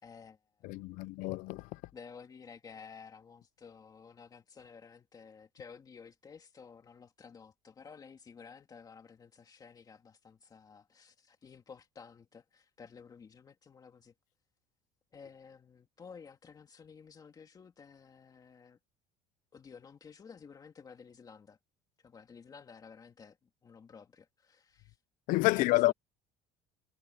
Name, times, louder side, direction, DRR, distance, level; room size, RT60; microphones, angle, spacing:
voice 1, 0.0-1.1 1.9-14.1 15.1-18.8 19.5-21.6 22.0-25.0 25.5-25.9, left 6 dB, 25° left, 2.2 m, -53 dB
voice 2, 0.7-1.6 25.3-25.9, left 19 dB, 70° left, 0.6 m, -28 dB
cardioid pair, 140°, 15 cm